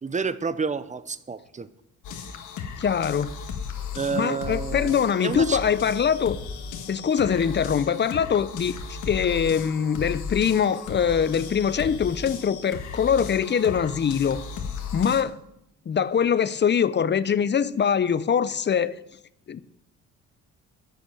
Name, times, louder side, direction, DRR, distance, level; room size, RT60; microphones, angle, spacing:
voice 1, 0.0-1.7 3.9-5.6, right 5 dB, 25° right, 0.8 m, -29 dB
sound 1, 2.0-15.2, left 6 dB, 80° left, 1.7 m, -35 dB
voice 2, 2.8-3.3 4.1-6.4 6.9-8.8 9.1-14.4 14.9-15.4 15.9-19.0 19.5-19.6, left 7 dB, 35° left, 0.7 m, -23 dB
11.0 x 7.1 x 9.2 m
cardioid pair, 90°, 30 cm